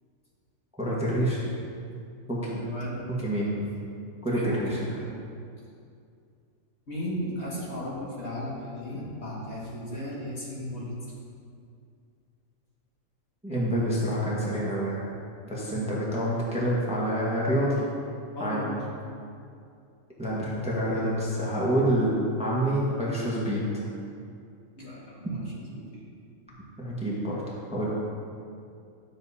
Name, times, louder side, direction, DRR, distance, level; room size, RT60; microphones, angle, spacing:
voice 1, 0.8-1.4 2.3-2.5 3.2-3.6 4.2-5.0 13.4-15.1 15.4-17.7 18.4-18.6 20.2-23.8 25.2-25.3 26.8-27.9, equal, 5° right, -7 dB, 1.4 m, -27 dB
voice 2, 2.5-3.0 4.3-4.9 6.9-10.9 15.7-16.0 18.3-18.8 24.7-26.0, left 1 dB, 50° left, -7 dB, 2.1 m, -35 dB
11.5 x 7.6 x 2.8 m, 2.4 s
omnidirectional pair, 1.5 m